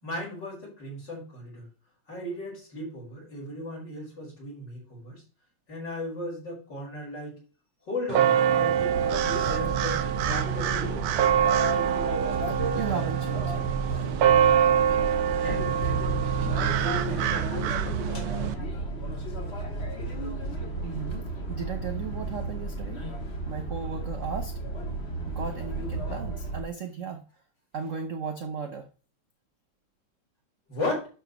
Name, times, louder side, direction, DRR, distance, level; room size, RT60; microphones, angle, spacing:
voice 1, 0.0-1.7 2.1-5.2 5.7-7.4 7.9-9.1 9.4-11.1 15.4-16.0 16.5-18.3 30.7-31.1, left 1 dB, 50° left, -4 dB, 5.6 m, -36 dB
sound 1, 8.1-18.5, right 9 dB, 80° right, 1.6 m, -25 dB
sound 2, 8.9-26.6, right 2 dB, 30° left, 1.7 m, -33 dB
voice 2, 12.5-13.9 20.8-23.0 23.4-24.5 25.3-27.2 27.7-28.9, right 6 dB, 60° right, 6 dB, 0.8 m, -36 dB
12.0 x 5.9 x 3.1 m, 0.36 s
omnidirectional pair, 2.4 m